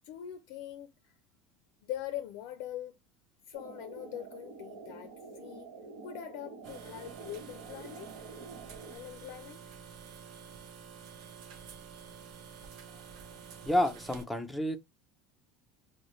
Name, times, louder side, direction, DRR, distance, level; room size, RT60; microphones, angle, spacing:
voice 1, 0.0-1.2 1.8-3.0 3.5-5.7 6.0-8.1 8.9-9.6, left 11 dB, 55° left, 0.4 m, -42 dB
sound 1, 3.5-9.0, right 4 dB, 75° right, 1.0 m, -48 dB
sound 2, 6.6-14.2, right 7 dB, 50° right, 0.7 m, -49 dB
voice 2, 13.6-14.8, left 1 dB, ahead, 0.5 m, -29 dB
3.8 x 2.1 x 3.0 m
cardioid pair, 175°, 0 cm